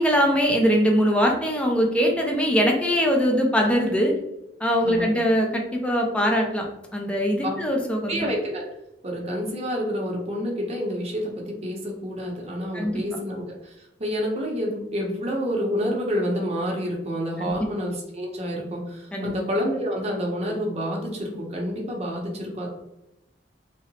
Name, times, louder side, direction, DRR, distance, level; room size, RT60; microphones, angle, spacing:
voice 1, 0.0-4.1 4.6-6.7 6.9-8.2 12.7-13.0 17.5-17.7 19.1-19.3, equal, 5° left, 1 dB, 0.4 m, -22 dB
voice 2, 8.0-8.6 9.0-22.7, equal, 35° right, -1 dB, 0.7 m, -28 dB
2.7 x 2.0 x 2.7 m, 0.91 s
head